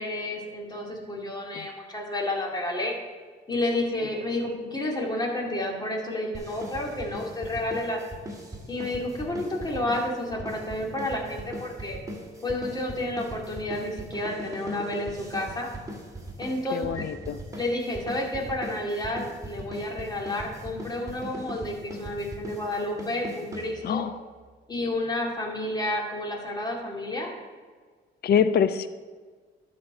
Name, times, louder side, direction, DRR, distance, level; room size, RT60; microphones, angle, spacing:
voice 1, 0.0-2.9 3.5-8.0 8.7-12.0 12.4-15.7 16.4-17.1 17.6-24.0 24.7-27.3, left 1 dB, 20° left, -1 dB, 2.2 m, -30 dB
sound 1, 6.3-24.1, right 1 dB, 15° right, 2.0 m, -40 dB
voice 2, 16.7-17.4 23.8-24.2 28.2-28.9, left 7 dB, 55° left, 13 dB, 0.5 m, -25 dB
11.5 x 4.3 x 6.5 m, 1.5 s
cardioid pair, 90°, 20 cm